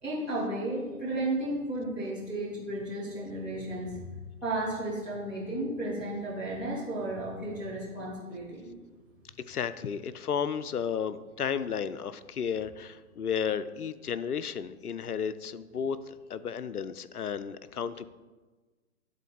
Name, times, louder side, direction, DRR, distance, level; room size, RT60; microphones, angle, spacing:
voice 1, 0.0-4.1 4.4-8.7, right 1 dB, 5° right, -12 dB, 0.5 m, -33 dB
voice 2, 9.5-18.1, left 7 dB, 85° left, 14 dB, 0.5 m, -33 dB
11.5 x 3.9 x 3.8 m, 1.3 s
figure-of-eight pair, 125°, 44 cm